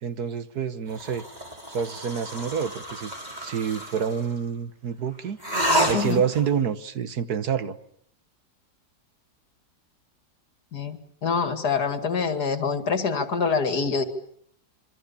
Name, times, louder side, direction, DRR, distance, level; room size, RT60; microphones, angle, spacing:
voice 1, 0.0-1.2 1.7-3.1 3.4-5.4 5.9-7.8, right 7 dB, 65° right, 12 dB, 1.7 m, -28 dB
sound 1, 0.9-4.3 5.4-6.5, equal, 25° right, 6.5 m, -29 dB
voice 2, 11.2-14.0, left 5 dB, 65° left, 9 dB, 2.7 m, -25 dB
27.0 x 24.5 x 7.1 m, 0.66 s
omnidirectional pair, 1.8 m